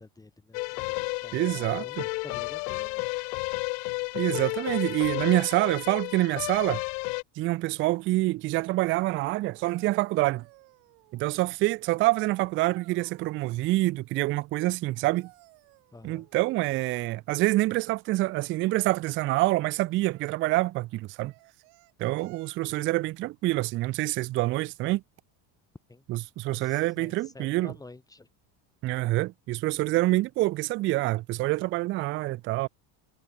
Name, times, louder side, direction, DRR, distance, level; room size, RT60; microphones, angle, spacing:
voice 1, 0.0-3.1 15.9-16.3 25.9-26.0 26.5-28.3, left 3 dB, 10° left, 2.9 m, -49 dB
sound 1, 0.5-7.2, left 32 dB, 90° left, 0.8 m, -32 dB
voice 2, 1.3-2.0 4.1-6.8 7.4-10.5 11.1-15.3 16.0-21.3 22.0-25.0 26.1-27.7 28.8-32.7, right 19 dB, 30° right, 0.4 m, -26 dB
sound 2, 9.4-11.4 12.6-13.5 14.9-16.5 18.6-19.2 20.1-20.5 21.2-23.0 24.8-25.0, right 40 dB or more, 65° right, 4.9 m, -57 dB
cardioid pair, 175°, 47 cm